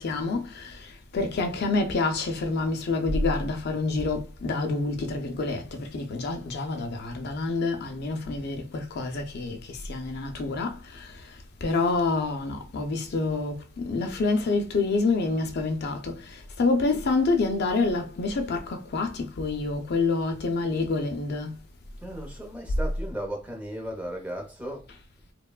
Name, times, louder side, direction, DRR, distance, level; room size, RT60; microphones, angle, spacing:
voice 1, 0.0-21.6, left 3 dB, 55° left, 0.4 m, -27 dB
voice 2, 22.0-24.9, right 1 dB, 10° right, 0.7 m, -36 dB
2.9 x 2.1 x 2.3 m
head